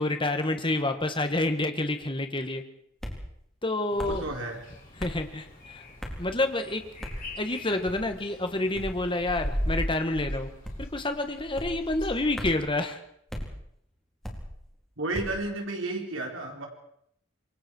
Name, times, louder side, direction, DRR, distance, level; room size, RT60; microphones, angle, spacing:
voice 1, 0.0-2.6 3.6-4.3 5.0-5.8 6.2-6.8 7.4-10.5 10.8-13.0, left 2 dB, 25° left, 7 dB, 1.9 m, -28 dB
sound 1, 3.0-3.2 4.0-4.3 5.0-5.2 6.0-6.3 7.0-7.3 7.8-8.1 8.7-9.0 9.7-10.0 10.6-11.0 11.5-11.8 12.4-12.7 13.3-13.5 14.2-14.5 15.1-15.4, equal, ahead, 3.8 m, -37 dB
sound 2, 3.9-12.3, equal, 45° left, 6.3 m, -38 dB
voice 2, 4.0-4.6 15.0-16.7, right 2 dB, 85° right, 1 dB, 4.0 m, -32 dB
27.5 x 23.0 x 4.7 m, 0.70 s
head